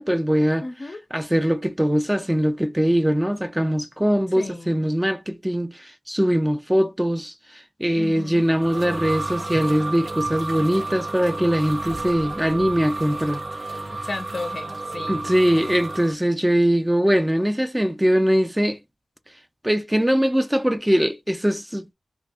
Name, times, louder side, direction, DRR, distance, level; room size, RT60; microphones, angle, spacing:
voice 1, 0.0-0.7 1.1-13.4 15.1-18.8 19.6-21.9, equal, 10° right, 0.5 m, -21 dB
voice 2, 0.6-1.0 4.4-4.9 8.0-8.5 13.8-15.3, left 3 dB, 45° left, 0.6 m, -34 dB
sound 1, 8.2-16.1, right 2 dB, 60° right, 1.1 m, -31 dB
2.9 x 2.4 x 3.5 m
wide cardioid pair, 85°, 0 cm